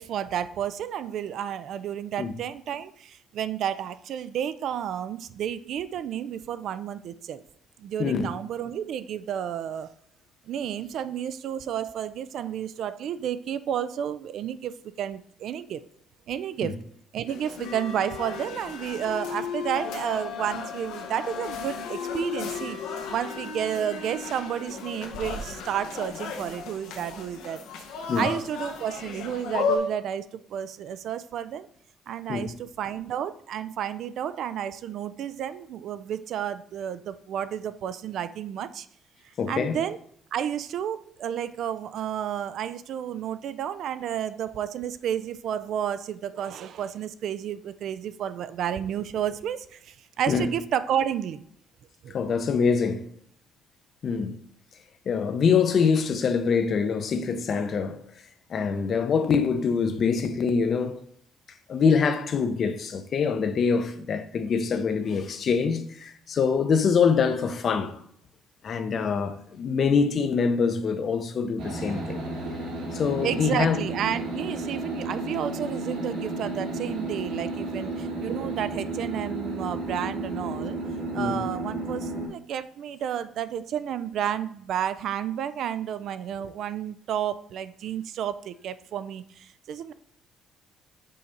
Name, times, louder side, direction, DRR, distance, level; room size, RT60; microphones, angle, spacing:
voice 1, 0.0-7.4 7.8-9.9 10.5-15.8 16.3-16.7 17.1-22.8 23.1-27.6 28.2-31.7 32.1-38.9 39.5-40.0 40.3-51.4 52.0-52.2 73.2-80.8 81.1-89.9, right 9 dB, 55° right, 0.4 m, -31 dB
voice 2, 8.0-8.4 16.6-16.7 28.1-28.3 32.3-32.5 39.4-39.8 50.3-50.5 52.1-53.1 54.0-54.4 55.1-58.1 58.5-61.0 61.7-68.0 68.6-72.2 72.9-73.8 81.2-81.4, left 5 dB, 40° left, 0.6 m, -24 dB
sound 1, 17.3-29.8, left 6 dB, 90° left, 0.9 m, -34 dB
sound 2, 71.6-82.3, right 2 dB, 85° right, 2.6 m, -32 dB
5.5 x 4.1 x 5.1 m
cardioid pair, 155°, 0 cm